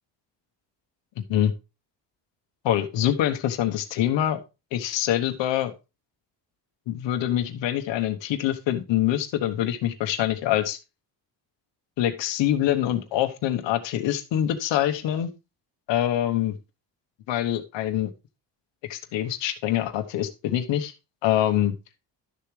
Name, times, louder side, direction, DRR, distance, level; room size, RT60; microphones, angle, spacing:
voice 1, 1.2-1.5 2.6-4.4 4.7-5.7 6.9-10.8 12.0-15.3 15.9-16.6 17.3-18.1 18.9-20.9 21.2-21.7, left 12 dB, 85° left, 7 dB, 1.1 m, -25 dB
12.0 x 6.9 x 3.2 m, 0.28 s
cardioid pair, 165°, 43 cm